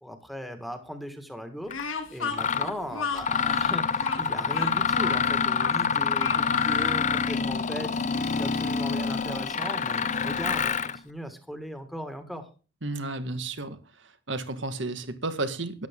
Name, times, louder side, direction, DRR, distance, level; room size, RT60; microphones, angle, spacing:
voice 1, 0.0-1.7 2.1-12.4, equal, ahead, 7 dB, 1.8 m, -38 dB
Speech, 1.7-7.0, left 4 dB, 90° left, 2.3 m, -34 dB
Mechanisms, 1.7-1.8 2.3-2.7 3.2-11.0, left 6 dB, 35° left, 0.7 m, -26 dB
voice 2, 12.8-13.8 14.3-15.9, right 2 dB, 65° right, 10 dB, 1.7 m, -32 dB
13.0 x 11.0 x 3.7 m, 0.35 s
head